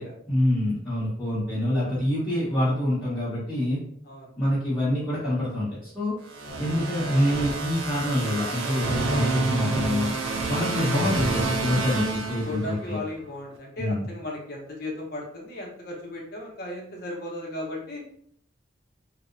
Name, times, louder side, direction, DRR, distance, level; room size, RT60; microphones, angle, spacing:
voice 1, 0.3-3.8 4.4-6.1 6.6-10.1 10.5-13.0 13.8-14.0, left 1 dB, ahead, -13 dB, 0.8 m, -26 dB
sound 1, 6.3-13.0, right 2 dB, 85° right, 0.4 m, -28 dB
voice 2, 12.4-18.0, left 1 dB, 50° left, -1 dB, 0.7 m, -36 dB
2.7 x 2.0 x 2.4 m, 0.65 s
head